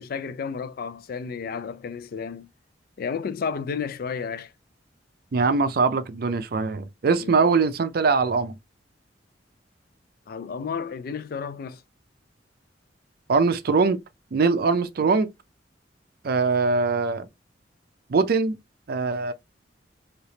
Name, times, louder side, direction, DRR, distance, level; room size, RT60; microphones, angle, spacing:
voice 1, 0.0-2.5 3.0-4.5 7.2-7.4 10.3-11.8, left 6 dB, 55° left, 0.3 m, -32 dB
voice 2, 5.3-8.6 13.3-14.0 14.3-15.3 16.2-17.3 18.1-18.5 18.9-19.3, right 4 dB, 55° right, 0.4 m, -22 dB
3.3 x 2.8 x 2.8 m
head